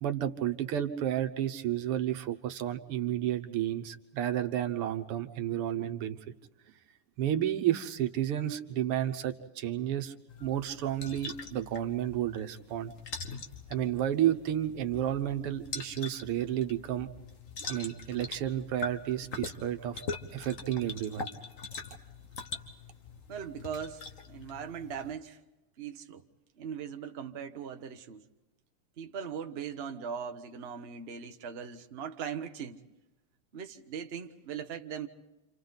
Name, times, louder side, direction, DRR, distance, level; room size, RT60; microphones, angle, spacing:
voice 1, 0.0-6.2 7.2-10.1 10.4-12.9 13.7-17.1 17.7-20.0 20.3-21.3, right 11 dB, 85° right, 7 dB, 2.0 m, -31 dB
sound 1, 10.3-25.1, left 4 dB, 40° left, 1.6 m, -43 dB
voice 2, 23.3-25.4 25.8-26.2 26.6-28.2 29.0-32.8 33.5-35.1, right 7 dB, 40° right, 5 dB, 0.9 m, -40 dB
29.5 x 27.5 x 4.0 m, 1.0 s
omnidirectional pair, 2.4 m